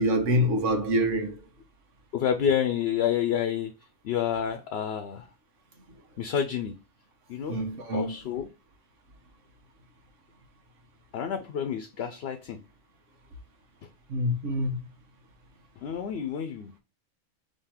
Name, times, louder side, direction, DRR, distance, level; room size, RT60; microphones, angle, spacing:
voice 1, 0.0-1.4 7.5-8.1 14.1-14.8, equal, 90° right, 1.4 m, -26 dB
voice 2, 2.1-3.7 4.0-5.3 6.2-6.7 7.3-7.6 7.9-8.5 11.1-12.6 15.8-16.7, left 8 dB, 65° left, 0.8 m, -29 dB
3.8 x 2.9 x 4.3 m
omnidirectional pair, 1.2 m